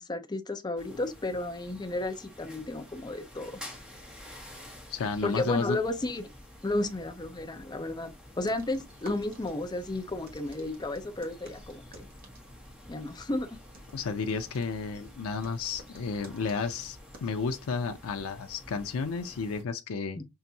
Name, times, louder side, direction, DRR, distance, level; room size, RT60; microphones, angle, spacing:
voice 1, 0.0-3.5 5.2-6.3 6.6-12.1 12.9-13.6 20.2-20.3, left 2 dB, 20° left, 0.5 m, -33 dB
sound 1, 0.8-19.6, left 1 dB, 5° right, 1.2 m, -50 dB
voice 2, 4.9-5.8 13.9-20.2, left 5 dB, 80° left, 0.5 m, -32 dB
sound 2, 8.4-17.3, right 2 dB, 45° right, 1.2 m, -54 dB
5.6 x 2.6 x 2.7 m
head